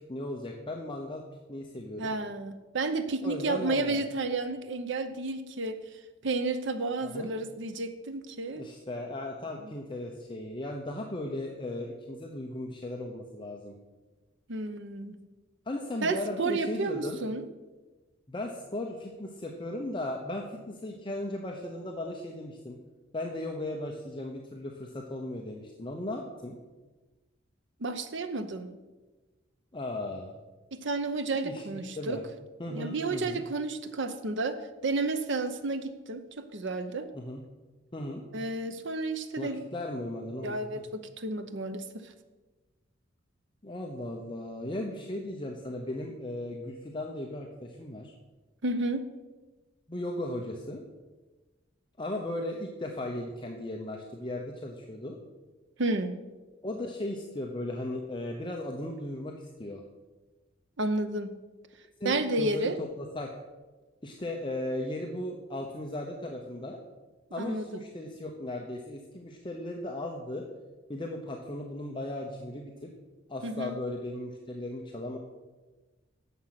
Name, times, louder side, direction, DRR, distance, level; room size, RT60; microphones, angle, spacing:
voice 1, 0.1-1.2 1.5-2.1 3.2-4.0 7.0-7.3 8.5-13.8 15.7-17.2 18.3-22.8 23.1-26.6 29.7-30.3 31.4-31.6 32.0-32.2 32.6-33.4 37.1-37.4 37.9-38.2 39.4-40.8 43.6-48.1 49.9-50.8 52.0-55.2 56.6-59.8 62.0-63.3 64.0-66.8 67.3-70.5 70.9-72.9 73.3-75.2, left 1 dB, 25° left, 1 dB, 0.9 m, -36 dB
voice 2, 2.0-5.8 6.2-8.7 9.6-9.7 14.5-15.2 16.0-17.4 27.8-28.7 30.7-32.2 32.7-37.1 38.3-39.6 40.4-42.1 48.6-49.1 55.8-56.1 60.8-61.3 62.0-62.8 67.4-67.8 73.4-73.7, right 2 dB, 65° right, 10 dB, 0.9 m, -31 dB
11.0 x 7.4 x 5.9 m, 1.2 s
head